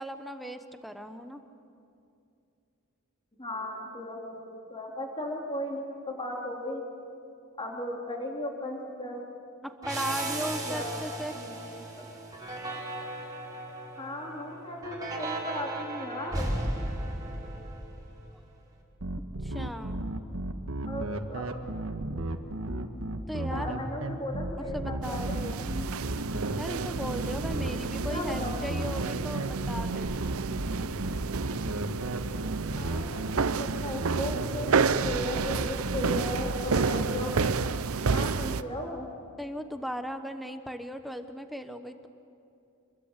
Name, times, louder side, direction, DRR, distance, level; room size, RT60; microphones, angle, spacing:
voice 1, 0.0-1.4 9.6-11.3 18.3-18.4 19.4-20.0 23.3-23.7 24.6-25.6 26.6-30.2 39.4-42.1, equal, ahead, 7 dB, 1.1 m, -37 dB
voice 2, 3.4-6.8 7.6-9.2 10.6-11.0 11.3-12.1 14.0-16.5 20.9-21.6 22.1-22.4 23.4-25.9 28.1-28.7 32.8-37.3 37.9-39.1, left 1 dB, 25° left, 0 dB, 3.2 m, -36 dB
sound 1, 9.8-18.3, right 2 dB, 20° right, 5.1 m, -36 dB
sound 2, 19.0-37.5, right 1 dB, 70° right, 1.5 m, -34 dB
sound 3, 25.0-38.6, right 5 dB, 90° right, 0.7 m, -31 dB
26.5 x 21.5 x 8.2 m, 2.6 s
head